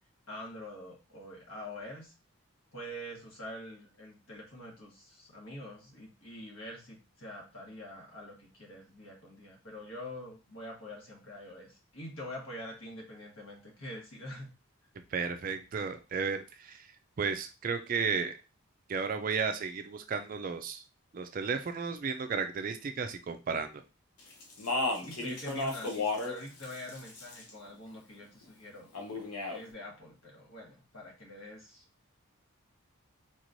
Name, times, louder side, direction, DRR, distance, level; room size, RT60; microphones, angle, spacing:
voice 1, 0.3-2.1 2.7-14.5 25.0-29.2 29.5-31.8, left 1 dB, 70° left, -2 dB, 1.4 m, -45 dB
voice 2, 15.1-16.9 17.2-18.4 18.9-20.8 21.1-23.8, right 5 dB, 40° right, 8 dB, 0.3 m, -33 dB
Speech, 24.4-26.4 26.6-27.5 28.9-29.6, left 2 dB, 90° left, 0.9 m, -33 dB
4.0 x 3.0 x 2.6 m, 0.31 s
head